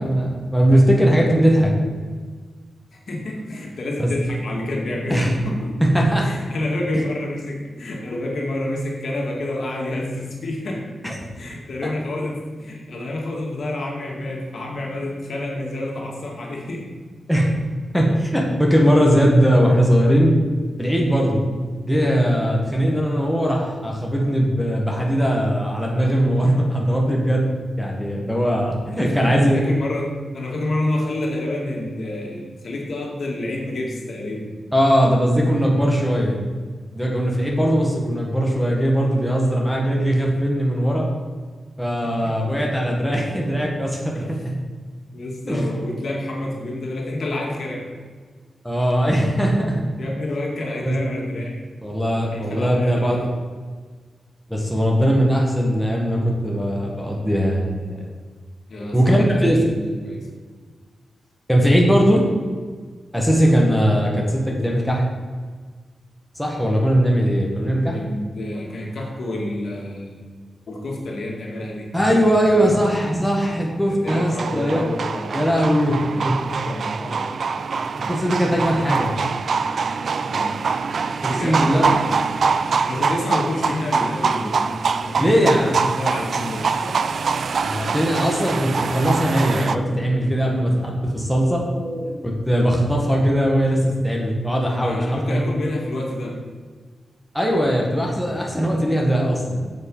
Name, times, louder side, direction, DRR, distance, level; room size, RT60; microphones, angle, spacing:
voice 1, 0.0-1.7 4.0-4.1 5.1-5.3 5.8-6.3 11.0-11.1 11.8-11.9 17.3-17.5 17.9-20.4 20.8-21.4 21.9-27.5 27.8-29.6 34.7-36.4 36.9-41.1 41.8-44.5 45.5-45.7 48.6-49.8 50.8-51.0 51.8-53.3 54.5-58.0 58.9-59.7 61.5-62.3 63.1-65.0 66.3-67.9 71.9-74.9 75.3-76.4 78.1-79.1 81.2-81.9 85.2-85.8 87.6-91.6 92.2-95.4 97.3-99.6, equal, ahead, -2 dB, 1.6 m, -19 dB
voice 2, 2.9-5.7 6.2-10.8 11.4-16.9 28.9-34.5 42.0-42.5 44.1-44.3 45.1-47.9 50.0-51.6 52.3-53.3 58.7-60.3 67.9-70.3 70.7-71.9 72.1-72.8 73.9-75.6 75.9-77.3 80.2-80.8 81.3-82.1 82.8-87.0 90.4-90.8 91.7-92.2 94.7-96.4, left 1 dB, 60° left, -1 dB, 2.1 m, -29 dB
sound 1, 74.1-89.8, right 5 dB, 60° right, 0.4 m, -24 dB
7.9 x 7.5 x 5.5 m, 1.5 s
wide cardioid pair, 140°, 0 cm